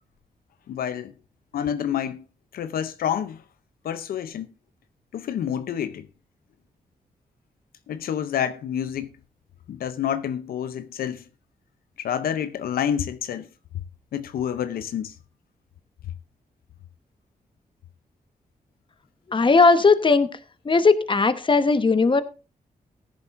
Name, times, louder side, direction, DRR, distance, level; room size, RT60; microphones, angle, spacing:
voice 1, 0.7-1.1 1.5-2.2 2.5-3.4 3.8-4.5 5.1-6.1 7.9-9.1 9.7-11.2 12.0-13.5 14.1-15.1, left 9 dB, 90° left, 0.6 m, -28 dB
voice 2, 19.3-20.3 20.6-22.2, left 4 dB, 35° left, 1.1 m, -18 dB
16.0 x 10.5 x 2.6 m
cardioid pair, 70°, 15 cm